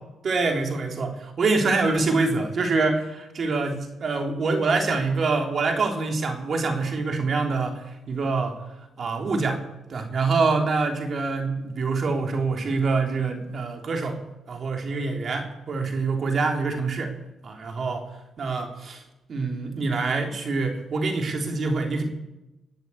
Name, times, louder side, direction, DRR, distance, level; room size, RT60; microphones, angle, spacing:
voice 1, 0.2-7.8 8.1-8.5 9.0-9.6 9.9-14.2 14.5-17.1 17.4-18.0 18.4-19.0 19.3-22.0, right 3 dB, 50° right, 3 dB, 3.5 m, -25 dB
20.0 x 8.2 x 8.7 m, 0.97 s
cardioid pair, 90°, 0 cm